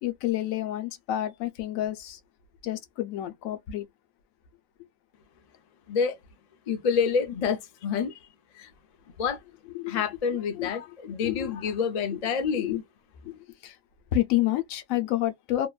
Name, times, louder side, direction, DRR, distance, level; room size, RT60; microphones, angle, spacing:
voice 1, 0.0-2.2 2.6-3.9 9.6-10.2 10.5-10.9 11.2-11.6 12.1-12.8 13.2-13.8 14.1-15.7, left 13 dB, 90° left, 1.0 m, -30 dB
voice 2, 5.9-6.2 6.7-8.1 8.6-8.7 9.2-9.4 9.9-12.8, left 6 dB, 65° left, 0.4 m, -28 dB
2.9 x 2.2 x 2.3 m
omnidirectional pair, 1.4 m